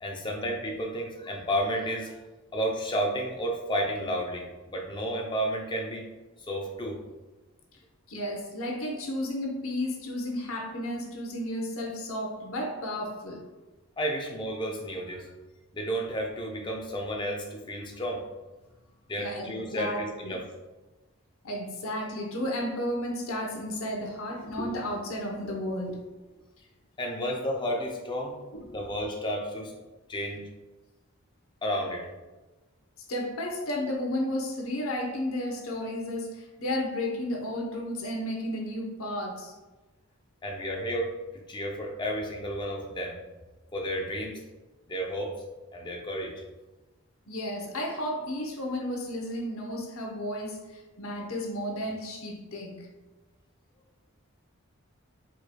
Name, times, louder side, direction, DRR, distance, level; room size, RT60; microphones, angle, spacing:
voice 1, 0.0-2.2 2.5-6.1 6.4-7.0 14.0-15.3 15.7-18.2 19.1-20.4 27.0-28.4 28.7-29.7 30.1-30.4 31.6-32.1 40.4-41.1 41.5-43.2 43.7-44.4 44.9-45.3 45.7-46.4, equal, 20° left, 0 dB, 0.5 m, -32 dB
voice 2, 8.1-13.4 19.2-20.4 21.4-26.0 28.5-28.8 33.1-39.5 40.7-40.8 47.3-52.9, left 1 dB, 70° left, 1 dB, 0.8 m, -33 dB
4.8 x 4.5 x 2.2 m, 1.2 s
head